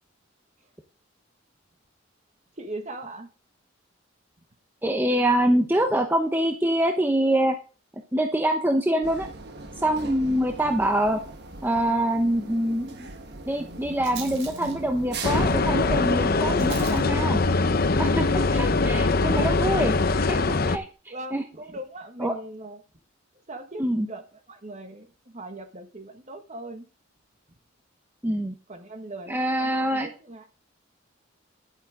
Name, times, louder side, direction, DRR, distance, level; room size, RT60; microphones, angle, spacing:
voice 1, 2.6-3.3 18.4-18.5 21.1-22.8 23.5-26.9 28.7-30.5, right 2 dB, 35° right, 1.6 m, -40 dB
voice 2, 4.8-7.6 8.1-9.3 9.8-11.2 11.6-13.1 13.5-17.4 18.0-18.3 18.5-21.4 22.2-22.3 23.8-24.1 28.2-28.5 29.3-30.1, right 1 dB, 10° right, 0.8 m, -25 dB
sound 1, 9.0-15.6, right 3 dB, 55° right, 1.4 m, -40 dB
Rattle, 14.0-20.9, right 7 dB, 80° right, 3.7 m, -48 dB
sound 2, 15.2-20.8, left 3 dB, 50° left, 0.7 m, -22 dB
11.0 x 8.8 x 3.7 m
head